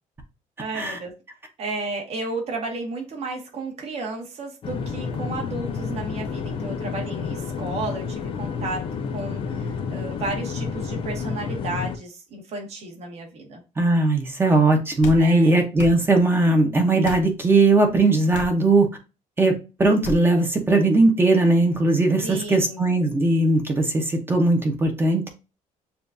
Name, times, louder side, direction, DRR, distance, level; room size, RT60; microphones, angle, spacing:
voice 1, 0.6-1.1 1.6-8.8 9.1-13.6 15.2-15.5 22.2-22.8, right 2 dB, 50° right, 1.5 m, -33 dB
sound 1, 4.6-12.0, left 5 dB, 40° left, 0.5 m, -30 dB
voice 2, 13.8-18.9 19.4-19.5 19.8-25.4, right 2 dB, 15° right, 0.9 m, -19 dB
sound 2, 15.0-15.3 15.8-16.0 17.0-17.3 18.3-18.6 20.0-20.2, left 2 dB, 65° left, 0.8 m, -32 dB
6.9 x 2.5 x 2.6 m
cardioid pair, 160°, 14 cm